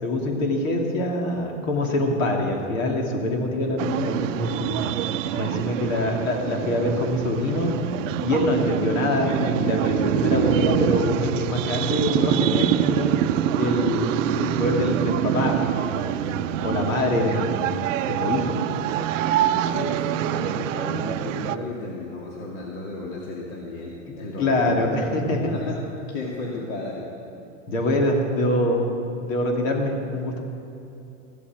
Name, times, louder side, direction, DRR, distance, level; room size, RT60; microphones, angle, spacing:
voice 1, 0.0-4.9 5.3-7.7 8.2-13.1 13.5-17.8 18.1-18.5 24.4-25.5 27.7-28.8 29.2-30.4, left 1 dB, 70° left, 1 dB, 2.7 m, -24 dB
sound 1, 3.8-21.6, right 11 dB, 65° right, 0.6 m, -25 dB
voice 2, 19.4-24.9 25.3-25.8 26.1-27.1, left 2 dB, 50° left, -3 dB, 2.1 m, -33 dB
15.0 x 8.7 x 7.4 m, 2.8 s
supercardioid pair, 145°, 40 cm